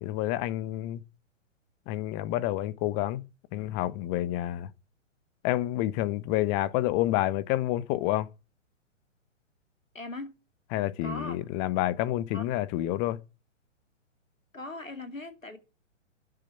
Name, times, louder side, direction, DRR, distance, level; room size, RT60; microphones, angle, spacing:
voice 1, 0.0-1.0 1.9-3.3 3.5-4.7 5.4-8.3 10.7-13.2, left 14 dB, 25° left, 0.8 m, -29 dB
voice 2, 9.9-10.3 11.0-11.4 12.3-12.4 14.5-15.6, left 2 dB, 90° left, 2.7 m, -39 dB
11.5 x 7.5 x 9.8 m
figure-of-eight pair, 120°, 38 cm